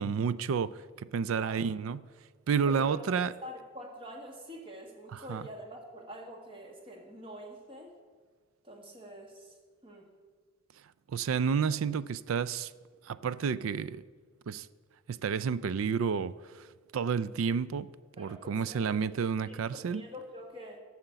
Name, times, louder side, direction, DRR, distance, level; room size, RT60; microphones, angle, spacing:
voice 1, 0.0-2.1 2.5-3.3 5.1-5.5 11.1-12.7 13.1-14.0 14.5-14.7 15.1-16.7 16.9-17.9 18.2-20.0, right 6 dB, 85° right, 0.4 m, -30 dB
voice 2, 1.2-1.6 2.7-8.0 8.6-9.5 9.8-10.1 18.2-20.8, equal, 25° right, 1.5 m, -46 dB
11.5 x 5.8 x 7.9 m
head